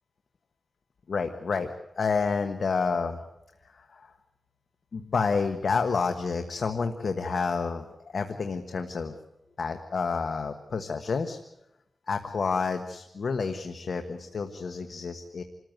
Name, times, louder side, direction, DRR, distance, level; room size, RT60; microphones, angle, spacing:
voice 1, 1.1-1.7 2.0-3.2 3.7-4.1 4.9-9.1 9.6-11.4 12.1-15.4, left 5 dB, 65° left, 7 dB, 1.3 m, -29 dB
27.0 x 14.5 x 9.4 m, 0.89 s
wide cardioid pair, 125°, 0 cm